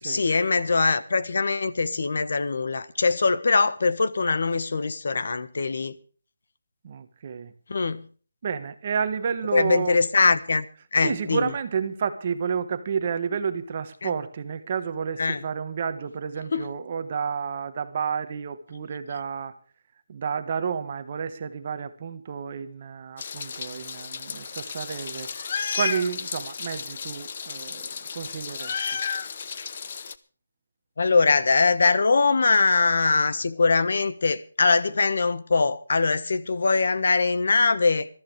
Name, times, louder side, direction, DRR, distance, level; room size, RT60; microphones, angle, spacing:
voice 1, 0.0-5.9 7.7-8.0 9.5-10.6 10.9-11.5 14.0-14.1 15.2-15.4 16.5-16.6 31.0-38.1, left 4 dB, 50° left, 1.3 m, -22 dB
voice 2, 6.8-7.5 8.4-10.0 11.0-19.6 20.1-28.8, right 6 dB, 25° right, 1.3 m, -30 dB
Meow, 23.2-30.1, left 6 dB, 30° left, 0.8 m, -33 dB
22.0 x 14.0 x 3.3 m
hypercardioid pair, 175°, 0 cm